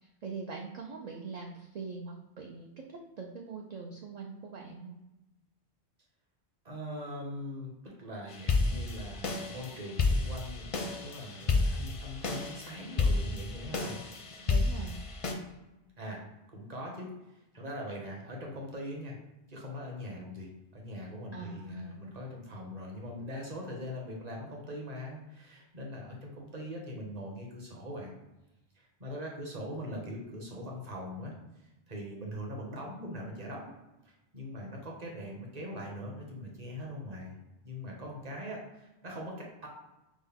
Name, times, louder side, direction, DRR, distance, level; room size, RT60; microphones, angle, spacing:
voice 1, 0.0-5.0 14.4-15.0 21.3-22.0, right 4 dB, 55° right, 1 dB, 0.4 m, -42 dB
voice 2, 6.6-14.0 16.0-16.2 16.5-19.2 19.5-28.1 28.7-33.7 34.0-37.4 37.6-39.7, equal, 40° right, -1 dB, 1.1 m, -41 dB
sound 1, 8.3-15.3, left 3 dB, 45° left, 0.5 m, -31 dB
6.2 x 2.2 x 3.5 m, 0.97 s
omnidirectional pair, 1.1 m